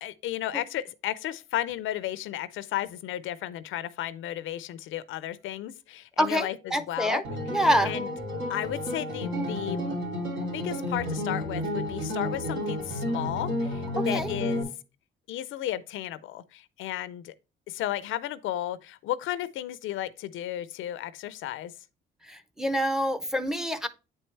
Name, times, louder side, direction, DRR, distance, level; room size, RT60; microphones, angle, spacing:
voice 1, 0.0-7.2 7.9-8.1 8.5-9.8 10.5-14.7 15.3-17.3 17.7-21.7, left 13 dB, 80° left, 0.5 m, -34 dB
voice 2, 6.2-7.2 7.5-7.9 14.0-14.3 22.3-23.9, equal, 5° right, 0.7 m, -26 dB
sound 1, 7.2-14.6, left 1 dB, 75° right, 2.7 m, -31 dB
8.6 x 4.4 x 3.2 m
cardioid pair, 90°, 20 cm